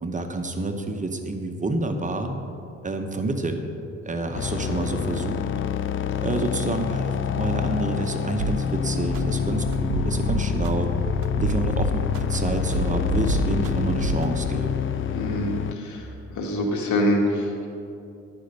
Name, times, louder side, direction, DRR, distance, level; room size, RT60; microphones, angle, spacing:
voice 1, 0.0-2.4 2.8-3.7 4.0-5.4 6.2-10.9 11.4-14.8, right 2 dB, 25° right, 5 dB, 0.8 m, -28 dB
sound 1, 4.3-15.7, left 8 dB, 45° left, 0.4 m, -27 dB
sound 2, 8.4-8.6 9.1-9.2 9.7-10.7 11.2-12.4 12.7-13.7 14.0-14.2, right 4 dB, 85° right, 0.5 m, -27 dB
sound 3, 9.1-14.2, right 4 dB, 5° right, 2.1 m, -33 dB
voice 2, 15.1-16.1 16.3-17.7, left 1 dB, 75° left, 1 dB, 1.7 m, -25 dB
10.5 x 5.2 x 6.6 m, 2.6 s
cardioid pair, 90°, 30 cm